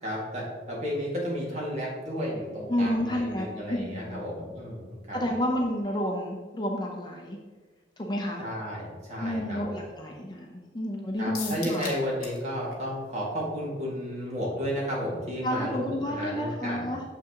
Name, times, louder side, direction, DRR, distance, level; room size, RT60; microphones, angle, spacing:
voice 1, 0.0-5.2 8.4-9.8 11.2-16.9, equal, 40° right, -4 dB, 1.9 m, -33 dB
voice 2, 2.7-4.2 5.1-7.4 8.0-8.4 9.2-11.9 15.4-17.0, equal, 25° left, 0 dB, 0.6 m, -30 dB
sound 1, 11.3-12.5 12.7-12.8 13.2-13.3, left 4 dB, 55° left, 1.4 m, -38 dB
6.8 x 6.1 x 2.9 m, 1.3 s
head